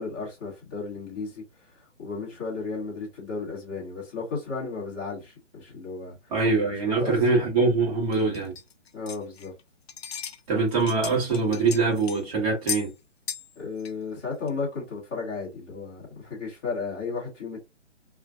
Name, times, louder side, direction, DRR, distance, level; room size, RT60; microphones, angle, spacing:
voice 1, 0.0-6.3 6.8-7.1 8.9-9.5 13.6-17.6, left 4 dB, 10° left, 0.6 m, -34 dB
voice 2, 6.3-8.5 10.5-12.9, right 3 dB, 30° right, 1.2 m, -23 dB
sound 1, 8.1-9.6 9.9-10.4 10.7-12.2 12.7-12.9 13.3-13.5 13.8-13.9 14.5-14.6, left 7 dB, 60° left, 0.6 m, -35 dB
2.5 x 2.2 x 3.4 m
hypercardioid pair, 155°, 37 cm